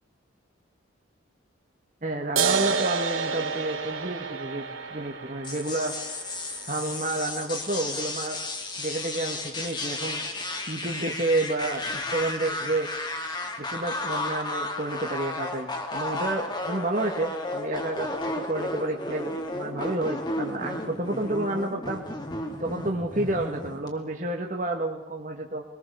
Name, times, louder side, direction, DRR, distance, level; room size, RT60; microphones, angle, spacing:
voice 1, 2.0-4.7 4.9-5.9 6.7-8.4 8.8-10.2 10.7-12.9 13.6-22.0 22.6-25.6, right 2 dB, 40° right, 1 dB, 1.8 m, -30 dB
sound 1, 2.4-9.3, right 5 dB, 80° right, 2.7 m, -31 dB
sound 2, 5.4-23.9, left 2 dB, 20° left, 2.2 m, -33 dB
23.5 x 19.0 x 7.0 m, 0.97 s
head